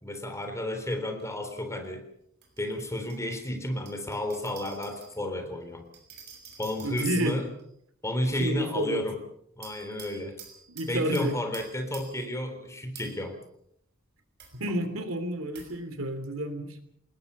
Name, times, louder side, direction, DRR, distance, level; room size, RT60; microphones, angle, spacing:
voice 1, 0.0-2.1 2.6-5.8 6.6-7.5 8.0-9.2 9.6-10.4 10.9-13.4, left 1 dB, 15° left, 6 dB, 3.7 m, -32 dB
sound 1, 1.2-1.3 2.4-3.2 3.9-5.1 5.9-7.6 9.6-12.3 12.9-13.3 14.4-14.6 15.5-15.8, right 7 dB, 55° right, 6.4 m, -49 dB
voice 2, 6.8-7.4 8.4-9.1 10.7-11.3 14.5-16.8, right 1 dB, 75° right, 9 dB, 3.2 m, -30 dB
27.5 x 20.5 x 5.6 m, 0.70 s
head